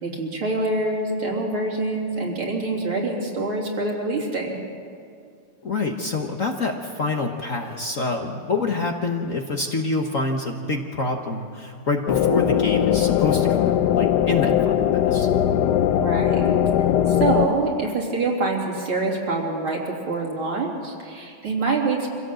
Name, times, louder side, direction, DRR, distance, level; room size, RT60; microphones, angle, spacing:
voice 1, 0.0-4.6 15.8-16.5 17.1-22.1, right 3 dB, 70° right, -2 dB, 4.1 m, -25 dB
voice 2, 5.6-15.3, left 3 dB, 45° left, 2 dB, 1.3 m, -26 dB
sound 1, 12.1-17.5, left 10 dB, 70° left, 1.0 m, -20 dB
25.5 x 16.5 x 7.7 m, 2.3 s
omnidirectional pair, 2.4 m